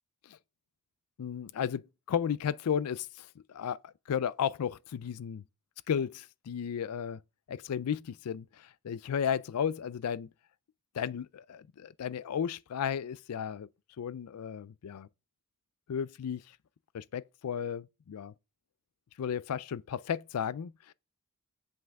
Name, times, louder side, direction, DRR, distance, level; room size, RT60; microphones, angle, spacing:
voice 1, 1.2-5.4 5.9-7.2 7.5-10.3 10.9-13.7 14.0-15.1 15.9-16.4 16.9-18.3 19.2-20.7, left 8 dB, 90° left, 0.4 m, -34 dB
7.9 x 5.1 x 3.5 m
head